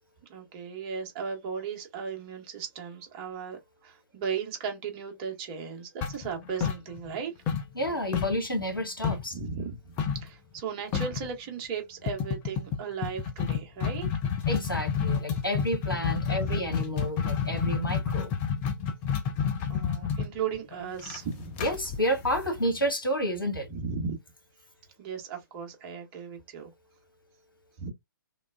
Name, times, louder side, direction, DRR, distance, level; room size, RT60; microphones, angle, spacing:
voice 1, 0.3-7.3 9.3-9.8 10.1-14.1 16.4-16.6 19.7-21.5 23.7-24.2 25.0-26.7 27.8-27.9, right 6 dB, 25° right, 0.9 m, -36 dB
sound 1, 6.0-7.2 7.5-9.4 10.0-10.3 10.6-10.7 10.9-11.3 12.1-22.9, left 7 dB, 15° left, 0.3 m, -29 dB
voice 2, 7.7-9.4 14.5-18.3 21.6-23.7, equal, 80° left, 1.3 m, -30 dB
3.2 x 2.2 x 2.3 m
figure-of-eight pair, 130°, 11 cm